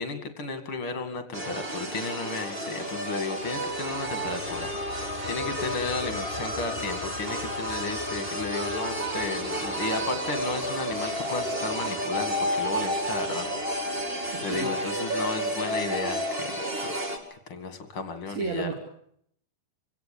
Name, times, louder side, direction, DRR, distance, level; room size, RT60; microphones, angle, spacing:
voice 1, 0.0-13.5 14.0-16.9 17.3-18.7, left 4 dB, 40° left, 9 dB, 2.7 m, -34 dB
sound 1, 1.3-17.2, right 1 dB, 20° right, 2.1 m, -31 dB
sound 2, 3.4-14.5, left 9 dB, 70° left, 2.5 m, -42 dB
voice 2, 14.3-14.7 18.3-18.7, right 4 dB, 50° right, 4 dB, 3.0 m, -32 dB
26.0 x 17.0 x 8.5 m, 0.69 s
omnidirectional pair, 4.3 m